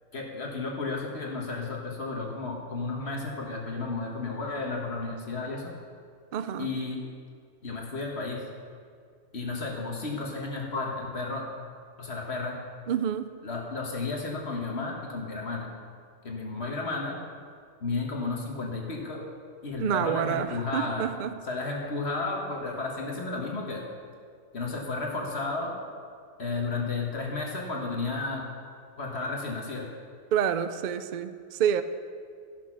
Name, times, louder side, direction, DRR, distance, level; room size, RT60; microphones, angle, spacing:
voice 1, 0.1-5.7 6.6-7.1 7.6-8.4 9.3-11.5 12.0-12.6 13.4-15.7 16.2-17.2 17.8-19.2 19.6-21.1 21.4-23.9 24.5-25.7 26.4-28.4 29.0-29.9, left 3 dB, 55° left, -1 dB, 1.6 m, -33 dB
voice 2, 6.3-6.7 12.9-13.3 19.8-21.3 30.3-31.8, right 9 dB, 75° right, 11 dB, 0.4 m, -28 dB
13.5 x 6.1 x 6.0 m, 2.1 s
omnidirectional pair, 1.3 m